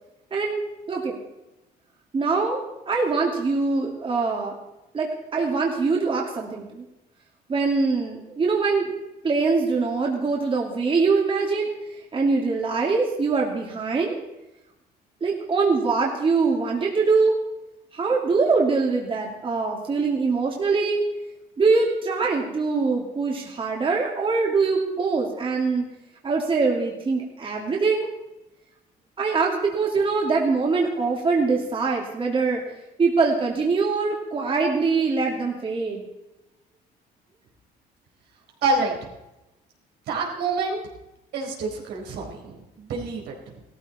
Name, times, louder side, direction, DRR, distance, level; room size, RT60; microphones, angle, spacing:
voice 1, 2.1-4.6 4.9-6.8 7.5-8.9 9.2-11.7 12.1-14.2 15.2-17.4 17.9-21.0 21.6-25.8 26.2-28.1 29.2-32.6 33.0-36.0, right 4 dB, 30° right, -1 dB, 2.5 m, -23 dB
voice 2, 38.6-39.0 40.1-40.8 41.3-43.6, right 3 dB, 75° right, -1 dB, 4.3 m, -27 dB
17.0 x 13.5 x 4.3 m, 0.95 s
cardioid pair, 110°, 17 cm